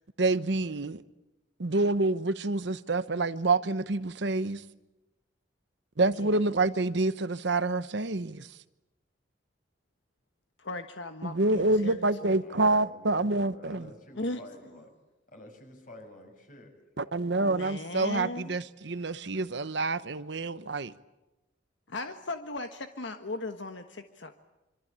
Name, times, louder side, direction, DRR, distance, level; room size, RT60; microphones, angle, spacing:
voice 1, 0.2-1.0 1.6-4.6 6.0-8.5 11.2-13.9 17.0-20.9, right 2 dB, 65° right, 0.9 m, -27 dB
voice 2, 6.2-6.6 10.6-12.6 14.2-14.4 17.4-18.6 21.9-24.3, left 2 dB, 70° left, 1.4 m, -38 dB
voice 3, 12.4-14.9 15.3-16.8, left 1 dB, 45° left, 6.3 m, -49 dB
26.0 x 25.0 x 8.8 m
head